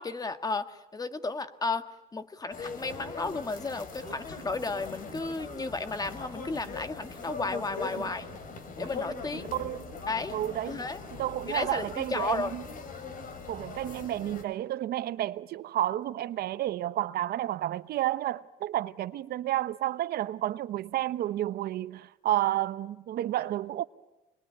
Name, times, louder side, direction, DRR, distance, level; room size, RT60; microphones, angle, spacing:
voice 1, 0.0-1.8 2.1-8.3 8.8-9.5 10.1-10.4 10.6-11.0 11.4-12.6, left 3 dB, 20° left, 1.6 m, -33 dB
sound 1, 2.5-14.4, left 4 dB, 55° left, 3.7 m, -41 dB
voice 2, 9.5-9.8 10.3-10.8 11.2-12.6 13.5-23.8, right 13 dB, 65° right, 0.9 m, -31 dB
27.5 x 21.5 x 9.8 m
cardioid pair, 110°, 17 cm